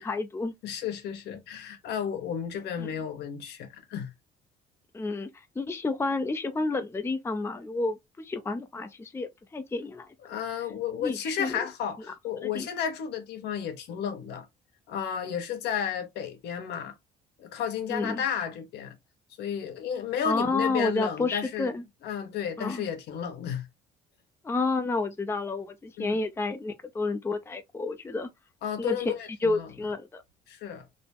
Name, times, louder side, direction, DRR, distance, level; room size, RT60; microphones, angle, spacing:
voice 1, 0.0-0.5 2.8-2.9 4.9-5.3 5.6-10.4 11.0-11.7 12.4-12.7 17.9-18.2 20.2-21.8 22.6-22.8 24.4-28.3 28.8-29.0 29.4-30.2, left 3 dB, 15° left, 0.6 m, -30 dB
voice 2, 0.6-4.1 10.3-14.5 14.9-16.9 17.4-19.0 19.4-21.7 22.0-23.6 26.0-26.2 28.6-29.7 30.5-30.8, left 8 dB, 80° left, 1.3 m, -32 dB
4.0 x 2.7 x 3.6 m
cardioid pair, 110°, 17 cm